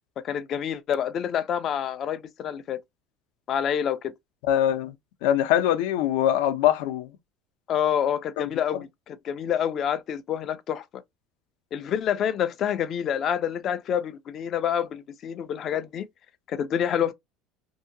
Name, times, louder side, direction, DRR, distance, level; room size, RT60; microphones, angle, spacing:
voice 1, 0.2-2.8 3.5-4.1 7.7-11.0 11.7-16.1 16.5-17.1, left 9 dB, 30° left, 0.4 m, -27 dB
voice 2, 4.5-4.9 5.2-7.1 8.4-8.5, left 11 dB, 75° left, 0.6 m, -23 dB
2.8 x 2.7 x 2.6 m
cardioid pair, 175°, 0 cm